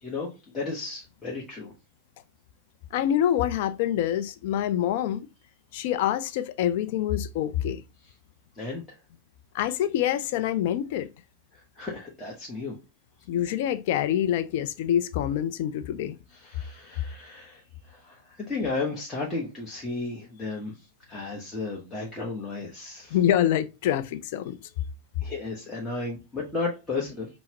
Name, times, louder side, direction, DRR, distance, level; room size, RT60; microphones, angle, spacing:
voice 1, 0.0-1.7 8.6-9.0 11.5-12.8 16.3-20.7 21.1-23.2 25.2-27.3, left 3 dB, 15° left, 0.9 m, -34 dB
voice 2, 2.9-5.3 5.7-7.8 9.5-11.1 13.3-16.2 23.1-24.6, left 11 dB, 50° left, 0.4 m, -26 dB
5.6 x 2.0 x 2.7 m
figure-of-eight pair, 90°, 0 cm